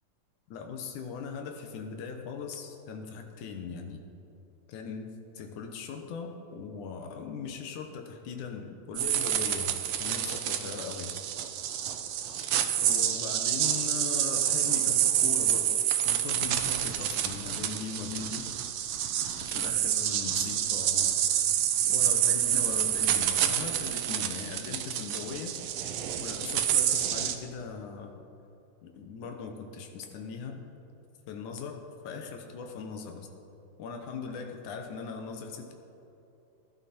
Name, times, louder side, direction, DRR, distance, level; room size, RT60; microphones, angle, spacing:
voice 1, 0.5-4.0 4.7-11.2 12.8-15.8 16.0-18.5 19.4-21.2 21.9-25.6 26.2-28.2 28.8-30.6 31.3-33.3 33.8-35.7, left 5 dB, 85° left, 4 dB, 2.5 m, -39 dB
sound 1, 9.0-27.4, right 10 dB, 70° right, 1.7 m, -28 dB
19.0 x 11.5 x 4.3 m, 2.9 s
omnidirectional pair, 3.4 m